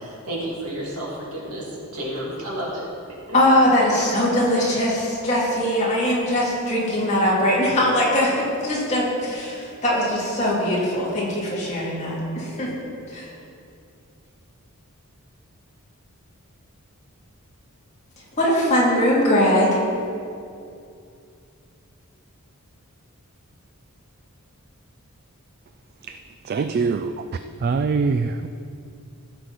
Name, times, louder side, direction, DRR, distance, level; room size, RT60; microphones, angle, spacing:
voice 1, 0.0-2.9, right 1 dB, 80° right, -5 dB, 2.9 m, -31 dB
voice 2, 3.3-12.8 13.1-13.3 18.4-19.8, left 1 dB, 30° left, -6 dB, 2.7 m, -21 dB
voice 3, 26.4-27.2 27.6-28.5, right 4 dB, 45° right, 9 dB, 0.3 m, -23 dB
15.5 x 6.3 x 4.2 m, 2.5 s
head